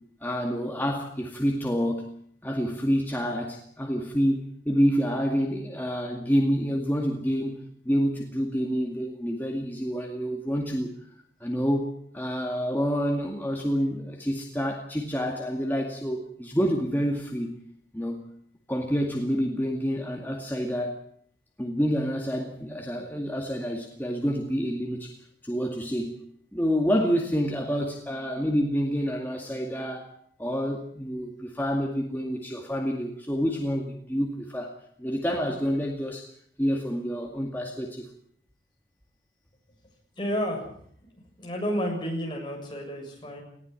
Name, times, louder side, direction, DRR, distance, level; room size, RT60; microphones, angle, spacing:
voice 1, 0.2-2.1 2.4-7.6 7.8-10.9 11.4-17.5 17.9-18.2 18.7-21.0 21.6-25.1 25.4-26.1 26.5-36.3 36.6-38.1, equal, 10° left, 0 dB, 2.1 m, -28 dB
voice 2, 40.2-40.6 41.4-43.4, equal, 25° left, 0 dB, 7.3 m, -30 dB
19.5 x 15.0 x 9.7 m, 0.65 s
head